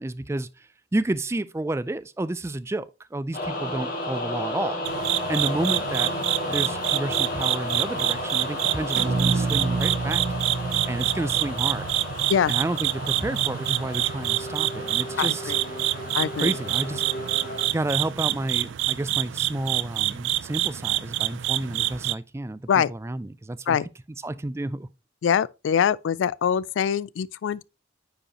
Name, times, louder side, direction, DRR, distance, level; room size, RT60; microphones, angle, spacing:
voice 1, 0.0-4.8 5.3-6.1 6.5-10.4 10.9-11.9 12.5-15.5 16.3-17.0 17.7-23.8 24.2-24.9, right 2 dB, 15° right, 0.3 m, -30 dB
sound 1, 3.3-17.7, left 1 dB, 50° left, 2.3 m, -33 dB
sound 2, 4.8-22.1, right 14 dB, 90° right, 0.4 m, -27 dB
sound 3, 9.0-13.2, right 3 dB, 60° right, 0.7 m, -30 dB
voice 2, 15.2-15.6 16.1-16.5 22.7-22.9 23.7-23.8 25.2-27.6, left 8 dB, 90° left, 0.3 m, -23 dB
9.8 x 5.1 x 2.9 m
head